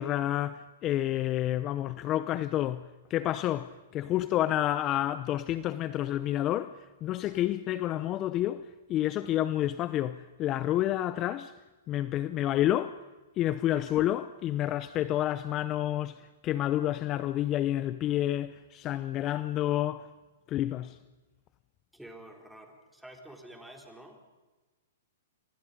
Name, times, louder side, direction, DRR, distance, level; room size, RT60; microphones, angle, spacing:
voice 1, 0.0-11.5 11.9-13.0 13.4-20.1 20.5-21.0, left 13 dB, 30° left, 0.7 m, -29 dB
voice 2, 21.9-24.2, right 1 dB, ahead, 3.9 m, -49 dB
28.5 x 24.5 x 5.3 m
hypercardioid pair, 130°, 0 cm